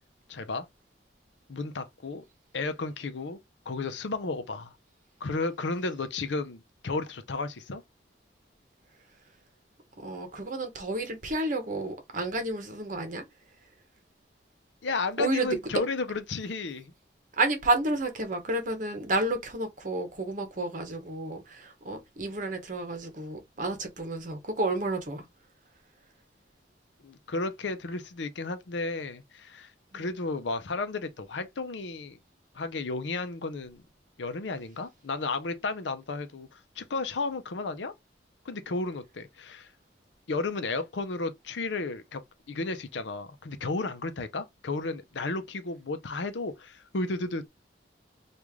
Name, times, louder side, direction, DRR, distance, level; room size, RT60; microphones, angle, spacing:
voice 1, 0.3-0.7 1.5-2.2 2.5-3.4 3.7-4.7 5.2-7.8 14.8-16.9 27.0-32.2 32.5-33.8 34.2-37.9 38.5-39.7 40.3-42.2 42.5-47.5, left 3 dB, 85° left, 0.6 m, -33 dB
voice 2, 10.0-13.2 15.2-15.6 17.3-25.2 29.9-30.0, right 2 dB, 45° right, 1.0 m, -31 dB
3.1 x 2.5 x 3.5 m
head